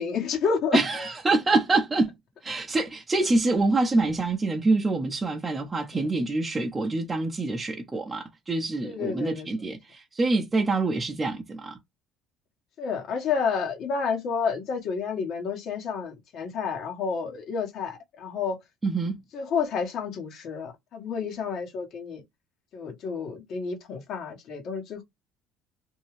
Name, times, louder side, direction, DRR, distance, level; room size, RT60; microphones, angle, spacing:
voice 1, 0.0-1.1 5.9-6.0 8.8-9.7 12.8-18.6 19.3-22.2 22.7-25.0, left 6 dB, 60° left, 1.2 m, -30 dB
voice 2, 0.7-2.1 2.4-11.8 18.8-19.2, right 3 dB, 20° right, 0.7 m, -26 dB
2.6 x 2.3 x 3.1 m
supercardioid pair, 95°, 0 cm